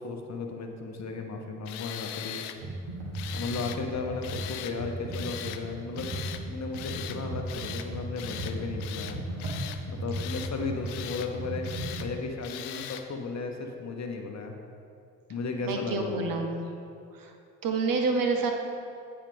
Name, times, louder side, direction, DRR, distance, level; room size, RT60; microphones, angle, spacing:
voice 1, 0.0-2.4 3.3-6.1 6.4-9.2 9.9-11.7 12.0-14.5 15.3-16.4, left 4 dB, 40° left, 3 dB, 0.9 m, -35 dB
Tools, 1.6-2.6 3.1-3.8 4.2-4.7 5.1-5.6 5.9-6.4 6.7-7.2 7.5-7.9 8.2-8.5 8.8-9.8 10.1-10.5 10.8-11.3 11.6-12.1 12.4-13.0, left 12 dB, 70° left, 0.5 m, -40 dB
Computer keyboard, 2.6-12.1, right 1 dB, 80° right, 1.1 m, -36 dB
voice 2, 15.6-16.7 17.1-17.3 17.6-18.5, right 3 dB, 50° right, 4 dB, 0.9 m, -28 dB
8.8 x 4.9 x 3.5 m, 2.5 s
hypercardioid pair, 50°, 42 cm